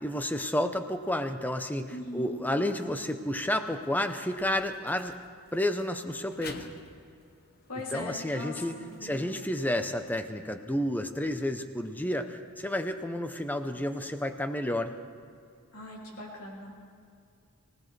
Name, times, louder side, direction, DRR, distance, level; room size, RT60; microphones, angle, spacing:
voice 1, 0.0-5.2 5.5-6.6 7.8-8.7 9.0-14.9, left 1 dB, 10° left, 8 dB, 0.7 m, -31 dB
voice 2, 1.9-2.4 7.7-9.4 15.7-16.7, left 2 dB, 75° left, -2 dB, 2.8 m, -40 dB
sound 1, 4.4-9.8, left 4 dB, 45° left, 0.9 m, -51 dB
24.0 x 17.0 x 3.3 m, 2.3 s
head